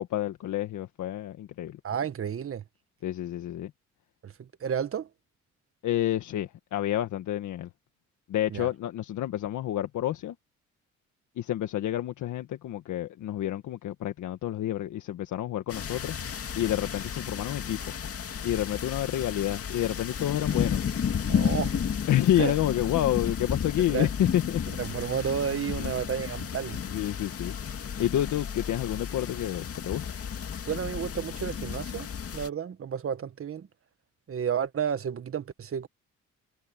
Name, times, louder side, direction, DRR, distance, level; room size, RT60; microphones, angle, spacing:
voice 1, 0.0-1.8 3.0-3.7 5.8-7.7 8.3-10.3 11.4-16.2 16.5-18.0 18.4-20.8 22.1-24.6 25.8-25.9 26.9-27.5 28.0-30.0, left 12 dB, 75° left, 1.6 m, -29 dB
voice 2, 1.8-2.6 4.2-5.1 8.5-8.7 21.3-21.8 22.4-22.6 23.9-24.1 24.7-26.8 30.6-32.1 32.3-33.7 34.3-35.9, right 8 dB, 45° right, 1.7 m, -31 dB
sound 1, 15.7-32.5, left 7 dB, 50° left, 2.3 m, -33 dB
cardioid pair, 90°, 30 cm